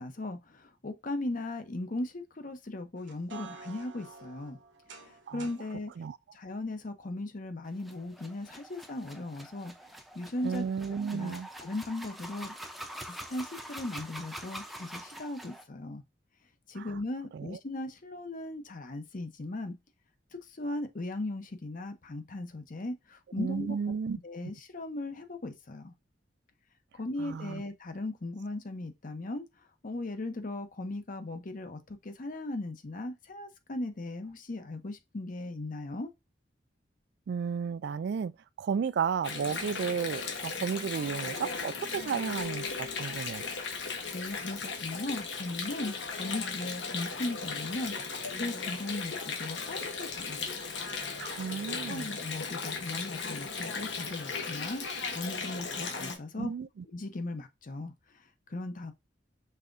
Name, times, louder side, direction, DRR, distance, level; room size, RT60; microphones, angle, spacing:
voice 1, 0.0-4.6 5.0-5.9 6.3-9.7 10.1-12.6 13.1-16.0 16.7-19.7 20.3-23.8 24.2-25.9 26.9-29.5 29.8-36.1 44.1-50.7 51.7-54.8 55.1-56.5 56.9-57.9 58.5-58.9, left 2 dB, 45° left, 0.7 m, -38 dB
sound 1, 3.0-5.7, right 4 dB, 90° right, 1.1 m, -49 dB
sound 2, 7.8-15.6, equal, ahead, 0.6 m, -45 dB
voice 2, 10.4-11.5 16.8-16.9 17.3-17.5 23.4-24.2 27.2-27.6 37.3-38.3 38.6-43.4 51.2-52.1 56.4-56.7, right 6 dB, 65° right, 0.3 m, -33 dB
Water, 39.2-56.2, left 5 dB, 80° left, 1.1 m, -37 dB
5.6 x 3.4 x 2.6 m
head